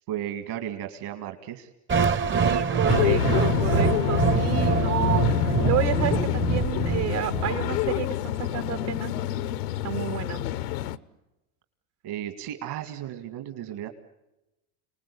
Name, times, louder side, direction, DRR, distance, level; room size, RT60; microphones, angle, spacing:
voice 1, 0.1-1.7 12.0-13.9, right 11 dB, 60° right, 6 dB, 2.4 m, -34 dB
sound 1, 1.9-7.9, right 6 dB, 25° right, 0.8 m, -25 dB
voice 2, 2.3-9.1 9.8-10.4, right 11 dB, 80° right, 6 dB, 2.9 m, -30 dB
sound 2, 2.9-11.0, left 12 dB, 85° left, 1.0 m, -27 dB
29.5 x 19.5 x 8.6 m, 0.98 s
hypercardioid pair, 90°, 45 cm